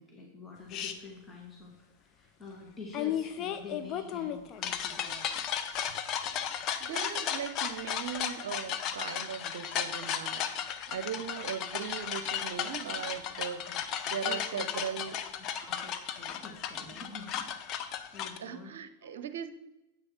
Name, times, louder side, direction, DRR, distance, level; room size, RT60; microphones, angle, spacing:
voice 1, 0.0-5.3 5.9-6.5 11.1-11.3 13.7-13.8 14.2-14.9 15.7-17.5 17.8-18.7 19.0-19.3, left 3 dB, 15° left, -1 dB, 1.8 m, -48 dB
sound 1, 0.7-0.9 2.9-18.4, left 9 dB, 35° left, 0.8 m, -35 dB
voice 2, 6.8-10.5 10.9-15.2 18.4-19.5, right 8 dB, 60° right, 12 dB, 0.7 m, -39 dB
9.7 x 8.1 x 4.4 m, 0.95 s
figure-of-eight pair, 90°, 0 cm